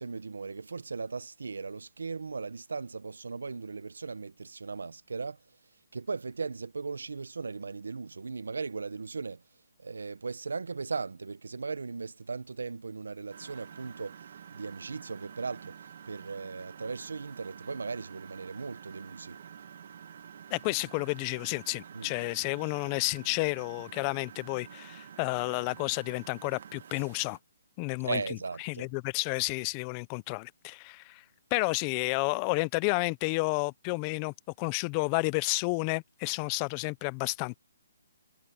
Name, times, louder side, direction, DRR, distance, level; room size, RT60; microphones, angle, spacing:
voice 1, 0.0-5.4 5.9-9.4 9.8-19.4 21.9-22.1 28.0-28.9, right 4 dB, 85° right, 1.1 m, -37 dB
Engine, 13.3-27.4, right 8 dB, 50° right, 1.8 m, -49 dB
voice 2, 20.5-27.4 27.8-28.2 28.6-31.2 31.5-37.6, left 30 dB, 25° left, 0.5 m, -31 dB
hypercardioid pair, 160°, 0 cm